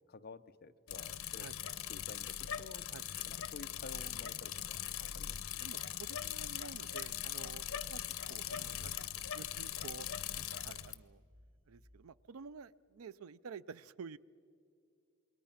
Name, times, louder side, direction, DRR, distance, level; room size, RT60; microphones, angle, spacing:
voice 1, 0.1-1.5 1.9-2.8 3.3-4.8 5.1-5.4 8.3-8.4, left 3 dB, 50° left, 10 dB, 0.7 m, -52 dB
Bicycle, 0.9-10.9, left 10 dB, 85° left, 0.8 m, -41 dB
sound 1, 4.9-12.1, left 1 dB, 60° right, 1.7 m, -64 dB
voice 2, 5.6-8.0 8.3-10.1 10.3-11.2 11.7-14.2, right 5 dB, 90° right, 18 dB, 0.5 m, -51 dB
27.5 x 22.0 x 5.8 m, 2.4 s
head